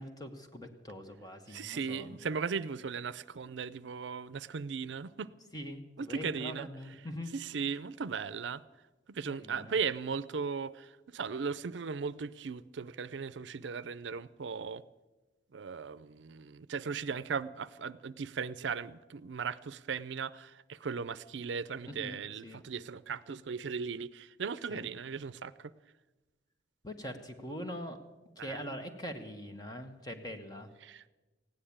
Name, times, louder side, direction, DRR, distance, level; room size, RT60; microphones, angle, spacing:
voice 1, 0.0-2.2 5.5-7.3 9.2-9.8 21.8-22.6 24.7-24.9 26.8-28.0 28.4-30.7, equal, 20° left, 6 dB, 1.3 m, -43 dB
voice 2, 1.5-5.3 6.0-6.7 7.3-8.6 9.1-14.8 15.5-25.7 28.4-28.6 30.8-31.1, right 5 dB, 80° right, 16 dB, 0.5 m, -37 dB
16.0 x 10.0 x 8.6 m, 1.1 s
head